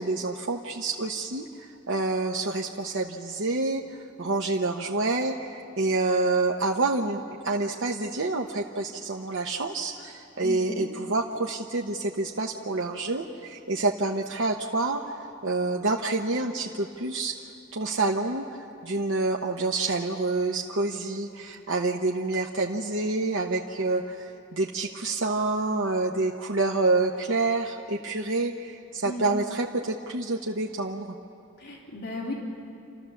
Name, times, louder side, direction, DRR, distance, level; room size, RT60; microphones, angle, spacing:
voice 1, 0.0-17.3 17.7-31.1, right 3 dB, 70° right, 0 dB, 0.9 m, -28 dB
voice 2, 10.4-10.9 29.0-29.4 31.6-32.3, left 1 dB, 55° left, -4 dB, 3.3 m, -35 dB
29.5 x 13.5 x 7.1 m, 2.6 s
head